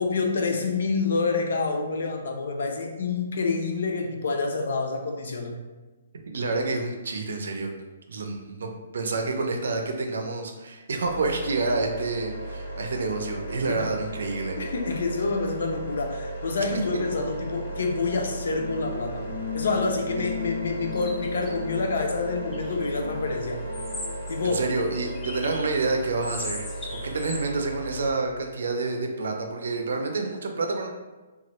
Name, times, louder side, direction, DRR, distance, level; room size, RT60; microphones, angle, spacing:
voice 1, 0.0-5.5 13.7-13.8 14.6-19.2 19.5-23.6 24.3-24.6, left 4 dB, 70° left, 3 dB, 0.5 m, -27 dB
voice 2, 6.3-7.7 8.1-14.6 24.4-26.7 27.0-30.9, right 3 dB, 75° right, 4 dB, 0.5 m, -28 dB
sound 1, 11.0-28.1, right 1 dB, 85° left, 1.3 m, -36 dB
sound 2, 16.0-24.8, left 4 dB, 20° right, 0.8 m, -38 dB
sound 3, 20.8-21.5 22.5-22.9 23.7-25.8 26.2-27.4, left 2 dB, 10° left, 0.3 m, -39 dB
3.0 x 2.4 x 2.9 m, 1.2 s
hypercardioid pair, 175°, 0 cm